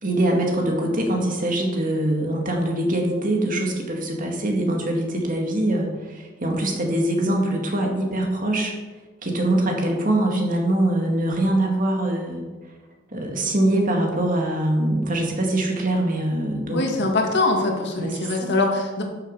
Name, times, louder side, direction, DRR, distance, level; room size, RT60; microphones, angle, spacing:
voice 1, 0.0-8.7 9.2-12.4 13.1-17.1 18.0-18.5, right 1 dB, 45° right, 1 dB, 2.2 m, -23 dB
voice 2, 16.7-19.0, left 2 dB, 60° left, 2 dB, 2.0 m, -23 dB
12.0 x 7.2 x 5.5 m, 1.3 s
head